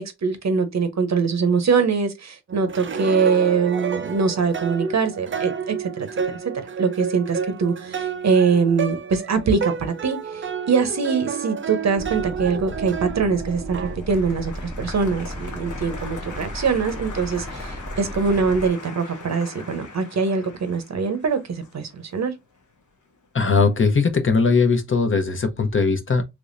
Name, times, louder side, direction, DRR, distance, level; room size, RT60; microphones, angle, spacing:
voice 1, 0.0-6.1 6.8-13.8 14.1-22.3, right 5 dB, 60° right, 0.8 m, -23 dB
sound 1, 2.5-14.0, right 6 dB, 40° right, 0.5 m, -30 dB
sound 2, 12.0-18.7, equal, ahead, 0.6 m, -35 dB
Applause, 13.1-23.5 23.8-24.4, left 4 dB, 70° left, 1.0 m, -41 dB
voice 2, 23.3-26.2, left 4 dB, 40° left, 0.8 m, -19 dB
3.5 x 3.1 x 2.5 m
wide cardioid pair, 95°, 31 cm